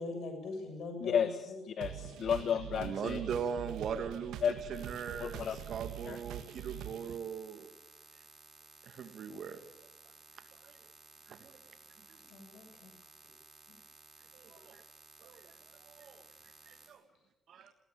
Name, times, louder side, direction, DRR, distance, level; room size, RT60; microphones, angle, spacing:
voice 1, 0.0-1.6 12.3-12.9, left 3 dB, 75° left, 6 dB, 7.3 m, -41 dB
voice 2, 1.0-1.3 1.7-3.2 4.4-4.5 5.2-5.6 6.0-6.2, left 8 dB, 60° left, 11 dB, 1.3 m, -32 dB
sound 1, 1.8-7.2, right 10 dB, 85° right, 1.8 m, -44 dB
voice 3, 2.8-4.4 4.7-7.7 8.9-9.6 10.6-10.8 11.3-11.6 12.1-12.2 14.3-14.8 15.2-15.5 15.9-16.2 16.7-17.0 17.5-17.7, right 7 dB, 65° right, 7 dB, 2.5 m, -40 dB
sound 2, 4.7-16.9, right 2 dB, 15° right, 7.0 m, -58 dB
19.5 x 18.0 x 8.8 m, 0.94 s
cardioid pair, 90°, 0 cm